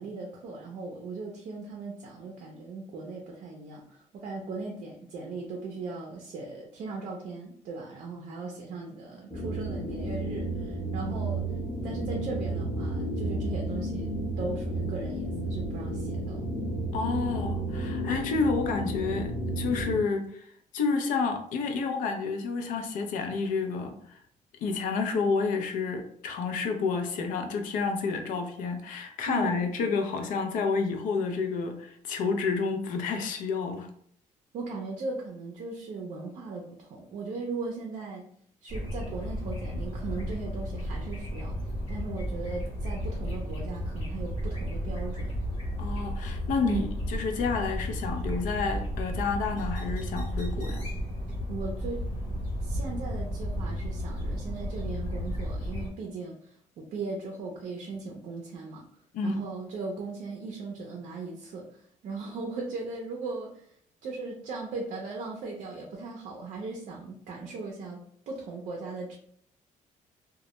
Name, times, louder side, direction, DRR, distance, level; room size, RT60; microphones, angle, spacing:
voice 1, 0.0-11.5 11.8-16.5 29.3-29.6 34.5-38.2 38.6-41.6 41.9-45.3 46.6-46.9 51.5-52.0 52.6-58.9 59.2-63.7 64.0-68.0 68.3-69.2, right 3 dB, 60° right, 0 dB, 0.5 m, -38 dB
sound 1, 9.3-20.0, right 1 dB, 10° left, 0.7 m, -32 dB
voice 2, 16.9-24.2 24.6-33.9 45.8-50.9 59.1-59.4, left 4 dB, 80° left, 5 dB, 0.5 m, -30 dB
sound 2, 38.7-55.9, equal, 50° left, 1.0 m, -33 dB
2.1 x 2.1 x 2.8 m, 0.62 s
cardioid pair, 145°, 13 cm